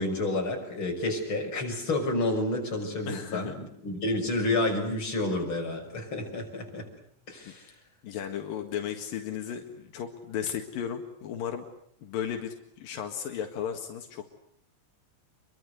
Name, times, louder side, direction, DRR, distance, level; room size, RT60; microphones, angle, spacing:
voice 1, 0.0-6.9 7.3-7.7, left 2 dB, 35° left, 1 dB, 6.9 m, -30 dB
voice 2, 3.1-3.6 7.5-7.6 8.0-11.7 12.0-14.3, left 8 dB, 85° left, 4 dB, 3.6 m, -35 dB
27.5 x 23.5 x 8.2 m, 0.68 s
omnidirectional pair, 3.9 m